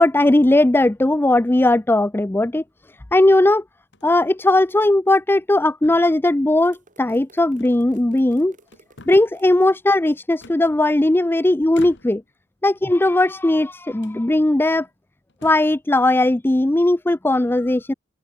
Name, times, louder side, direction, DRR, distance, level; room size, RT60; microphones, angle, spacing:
voice 1, 0.0-2.6 3.1-3.6 4.0-8.6 9.1-12.2 12.6-14.9 15.4-17.9, left 1 dB, 10° left, 0.5 m, -17 dB
sound 1, 1.2-1.6 2.4-3.2 3.9-4.2 4.6-4.7 5.2-5.6 5.8-6.5 7.6-8.3 8.6-9.4 10.4-11.2 11.7-12.4 12.9-13.6 14.0-14.2 14.8-14.9 15.3-15.8, left 2 dB, 60° left, 6.9 m, -47 dB
sound 2, 6.6-9.7, right 2 dB, 40° right, 7.5 m, -53 dB
head